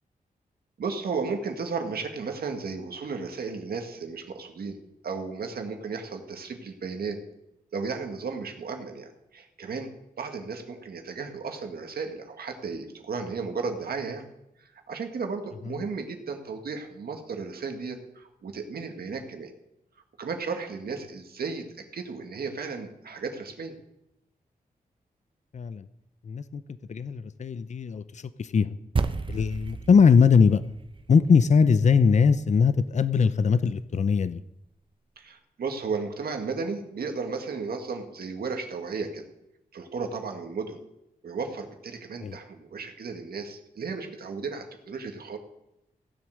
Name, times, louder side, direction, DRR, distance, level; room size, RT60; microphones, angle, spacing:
voice 1, 0.8-4.8 5.0-7.2 7.7-9.9 10.2-14.3 14.6-19.5 20.2-21.7 21.9-23.8 35.2-39.2 39.7-40.8 41.2-45.4, right 4 dB, 85° right, 4 dB, 1.8 m, -34 dB
voice 2, 25.5-25.9 26.3-26.6 26.9-28.8 29.3-30.6 31.1-34.4 42.2-42.4, left 5 dB, 50° left, 14 dB, 0.6 m, -21 dB
sound 1, 29.0-33.5, right 4 dB, 35° right, 0.7 m, -34 dB
16.0 x 7.7 x 6.4 m, 0.86 s
wide cardioid pair, 100°, 16 cm